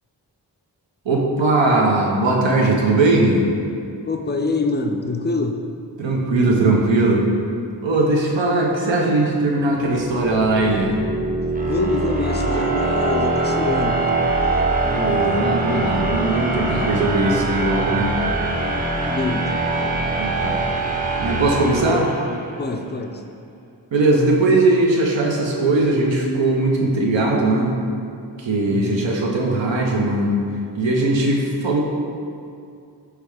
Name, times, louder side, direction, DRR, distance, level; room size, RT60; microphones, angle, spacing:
voice 1, 1.0-3.4 6.0-7.3 7.8-10.9 14.8-18.1 20.2-20.6 21.2-22.1 23.9-27.8 28.4-30.4 30.7-31.8, right 2 dB, 80° right, -1 dB, 0.7 m, -19 dB
voice 2, 4.1-5.6 11.7-14.0 19.1-19.5 22.6-23.2 28.7-29.0, left 3 dB, 25° left, 5 dB, 0.3 m, -25 dB
sound 1, 9.7-22.6, right 2 dB, 20° right, 0.7 m, -23 dB
3.3 x 3.3 x 4.8 m, 2.4 s
cardioid pair, 40°, 44 cm